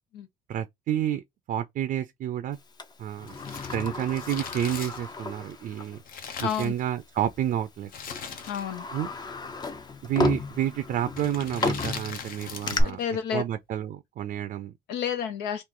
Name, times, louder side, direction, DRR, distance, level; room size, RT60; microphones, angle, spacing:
voice 1, 0.5-1.2 1.5-2.6 3.0-3.3 3.7-6.0 6.4-7.9 8.9-9.1 10.0-13.0 13.3-14.7, right 11 dB, 55° right, 0.5 m, -29 dB
Sliding door, 2.8-6.0 6.4-6.5 7.4-7.6 8.1-12.8, left 3 dB, 25° left, 0.5 m, -33 dB
Crumpling crinkling, 3.2-7.2 7.9-8.9 9.2-9.3 10.1-10.4 11.1-13.0 13.3-13.4, left 6 dB, 55° left, 0.8 m, -40 dB
voice 2, 6.4-6.7 8.5-8.9 12.8-13.4 14.9-15.6, left 8 dB, 85° left, 0.6 m, -30 dB
3.1 x 2.4 x 3.7 m
cardioid pair, 110°, 17 cm